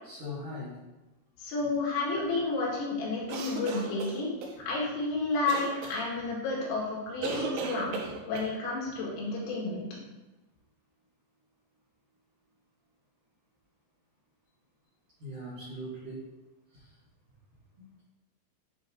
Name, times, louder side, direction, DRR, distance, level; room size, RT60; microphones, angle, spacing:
voice 1, 0.0-0.7 1.6-1.7 3.2-3.3 15.2-16.2, left 1 dB, 55° right, -11 dB, 2.2 m, -40 dB
voice 2, 1.4-4.3 4.7-8.0 8.3-9.9, left 3 dB, 85° left, -5 dB, 4.3 m, -31 dB
sound 1, 3.3-4.5 5.5-6.0 7.2-8.5, right 4 dB, 80° right, 3.0 m, -35 dB
9.5 x 4.0 x 2.8 m, 1.1 s
omnidirectional pair, 5.7 m